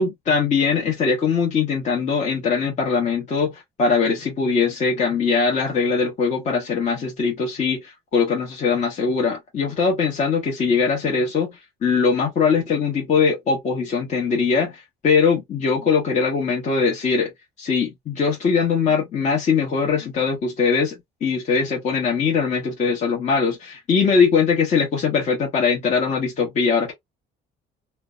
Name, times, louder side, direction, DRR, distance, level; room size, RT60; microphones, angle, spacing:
voice 1, 0.0-17.3 17.6-26.9, left 5 dB, 45° left, 0.9 m, -21 dB
2.5 x 2.1 x 2.3 m
cardioid pair, 110°, 17 cm